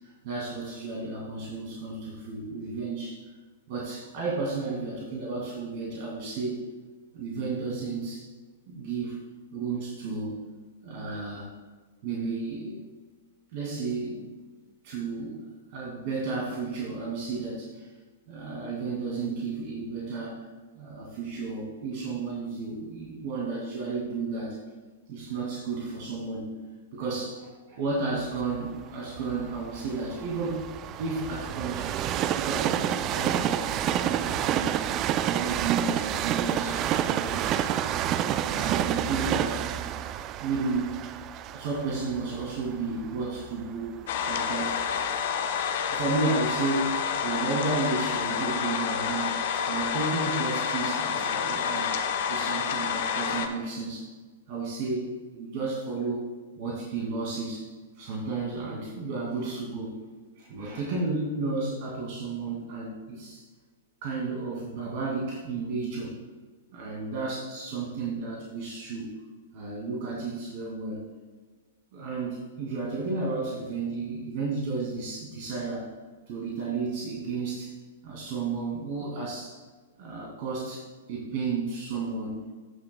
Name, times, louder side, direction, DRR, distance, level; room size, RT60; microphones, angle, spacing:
voice 1, 0.2-3.2 3.7-6.7 7.1-8.3 8.7-9.2 9.5-10.4 10.8-11.5 12.0-12.8 13.5-14.3 14.8-15.4 15.7-17.9 18.3-20.4 20.8-24.6 25.1-26.6 26.9-30.7 31.0-31.9 32.4-34.8 35.2-37.8 38.5-39.7 40.4-41.0 41.5-44.0 44.3-44.8 45.7-51.9 52.3-54.1 54.5-56.3 56.6-57.7 58.0-60.0 60.4-63.4 64.0-66.1 66.7-69.1 69.5-71.0 71.9-75.9 76.3-77.7 78.0-79.6 80.0-82.4, right 3 dB, 50° right, -4 dB, 2.2 m, -32 dB
Train, 28.4-44.3 44.9-45.0, right 10 dB, 35° right, 0.4 m, -29 dB
sound 1, 44.1-53.5, left 7 dB, 55° left, 0.8 m, -29 dB
15.5 x 6.7 x 2.2 m, 1.4 s
hypercardioid pair, 110°, 0 cm